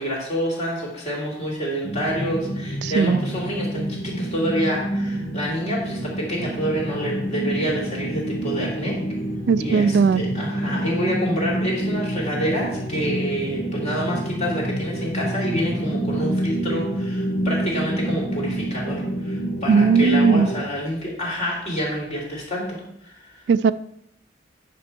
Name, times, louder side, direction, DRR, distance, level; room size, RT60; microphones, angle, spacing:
voice 1, 0.0-9.0 9.6-22.8 23.0-23.4, equal, 40° left, -4 dB, 3.1 m, -27 dB
sound 1, 1.8-20.6, right 1 dB, 85° left, 1.5 m, -27 dB
voice 2, 2.8-3.2 9.5-10.2 19.7-20.5 23.5-23.7, right 5 dB, 70° right, 15 dB, 0.3 m, -18 dB
9.6 x 6.0 x 4.5 m, 0.79 s
head